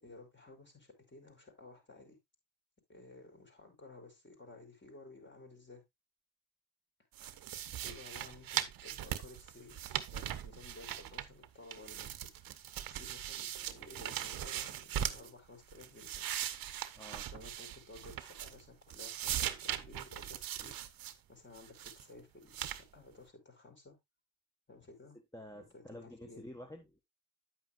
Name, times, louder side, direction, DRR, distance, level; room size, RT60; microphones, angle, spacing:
voice 1, 0.0-2.2 2.9-5.8 7.2-7.5 7.8-9.8 10.1-12.3 12.8-16.3 17.3-20.8 21.3-24.0 24.7-25.2 25.6-26.5, left 3 dB, 25° left, 5.2 m, -55 dB
sound 1, 7.2-11.5 11.7-15.3 15.7-18.6 18.9-21.1 21.6-22.0 22.5-22.8, right 11 dB, 55° right, 1.0 m, -40 dB
voice 2, 16.9-17.3 25.3-27.0, left 1 dB, 10° left, 1.6 m, -49 dB
9.8 x 8.7 x 2.5 m
supercardioid pair, 70°, 40 cm